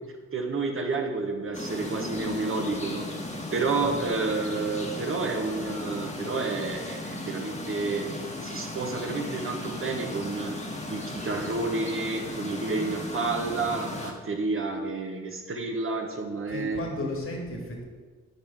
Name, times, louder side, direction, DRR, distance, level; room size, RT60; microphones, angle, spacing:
voice 1, 0.0-3.1 3.5-10.5 10.9-16.8, right 3 dB, 45° right, 3 dB, 1.2 m, -30 dB
sound 1, 1.5-14.1, left 1 dB, 25° left, 1.4 m, -36 dB
voice 2, 16.5-17.8, left 1 dB, 45° left, 0 dB, 1.9 m, -34 dB
9.7 x 4.9 x 3.5 m, 1.5 s
supercardioid pair, 50°, 30 cm